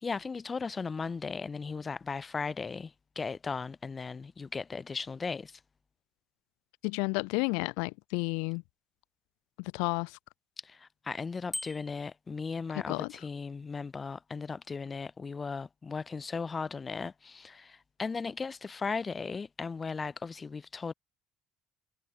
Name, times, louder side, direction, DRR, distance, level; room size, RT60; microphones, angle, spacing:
voice 1, 0.0-5.6 10.6-20.9, left 4 dB, 30° left, 2.5 m, -37 dB
voice 2, 6.8-8.6 9.6-10.2 12.9-13.1, left 36 dB, 85° left, 1.4 m, -31 dB
Bicycle bell, 11.5-12.1, left 1 dB, 10° left, 2.5 m, -39 dB
supercardioid pair, 80°, 0 cm